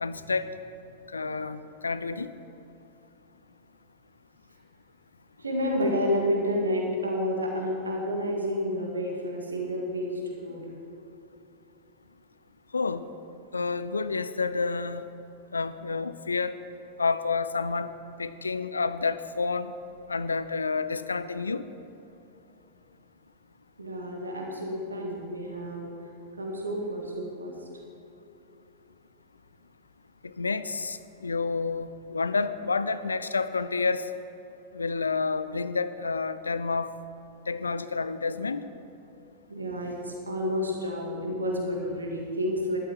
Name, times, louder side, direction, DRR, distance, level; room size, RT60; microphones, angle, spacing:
voice 1, 0.0-0.6 1.1-2.3 12.7-13.1 13.5-15.0 15.5-16.6 17.0-17.9 18.2-19.7 20.1-21.6 30.2-34.1 34.7-36.9 37.5-38.6, left 4 dB, 75° left, 13 dB, 0.4 m, -29 dB
voice 2, 5.4-10.6 23.8-25.9 26.4-27.5 39.5-42.8, equal, 75° right, 0 dB, 1.8 m, -30 dB
12.0 x 11.0 x 4.6 m, 2.9 s
figure-of-eight pair, 90°, 0 cm